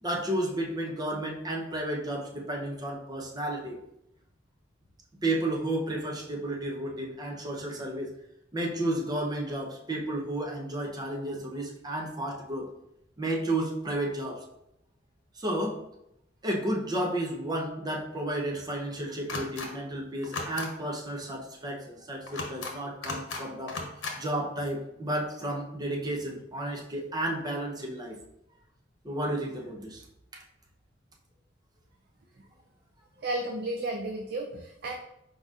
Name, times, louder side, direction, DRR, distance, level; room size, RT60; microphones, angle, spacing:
voice 1, 0.0-3.8 5.2-8.1 8.5-12.7 13.2-14.4 15.3-15.8 16.4-23.8 24.1-28.2 29.0-30.0 30.3-30.4, right 1 dB, 20° right, -1 dB, 0.7 m, -32 dB
sound 1, 19.3-19.7 20.2-20.7 22.3-22.7 23.0-23.4 23.7-24.1, left 3 dB, 90° left, 0.9 m, -35 dB
voice 2, 33.2-34.9, right 2 dB, 55° right, 2 dB, 0.5 m, -33 dB
4.6 x 4.1 x 2.4 m, 0.82 s
head